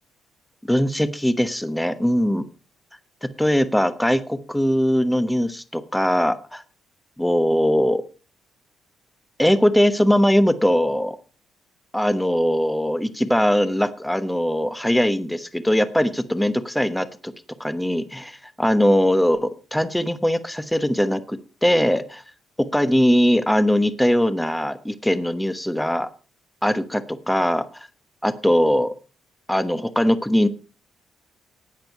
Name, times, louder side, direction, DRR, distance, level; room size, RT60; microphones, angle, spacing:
voice 1, 0.6-2.4 3.2-6.6 7.2-8.0 9.4-11.2 11.9-17.3 17.6-22.2 22.6-26.1 26.6-27.9 28.2-28.9 29.5-30.5, equal, 5° left, 11 dB, 1.0 m, -21 dB
13.5 x 9.0 x 4.6 m, 0.36 s
cardioid pair, 90°, 0 cm